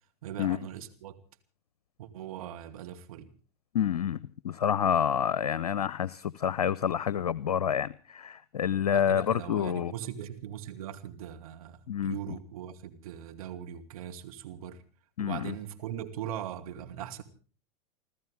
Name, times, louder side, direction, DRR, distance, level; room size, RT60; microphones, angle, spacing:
voice 1, 0.2-1.2 2.0-3.3 8.8-14.8 15.2-17.2, right 10 dB, 65° right, 2.5 m, -40 dB
voice 2, 3.7-4.2 4.4-9.9 11.9-12.1 15.2-15.5, left 8 dB, 75° left, 0.7 m, -28 dB
30.0 x 13.5 x 3.5 m
hypercardioid pair, 95°, 20 cm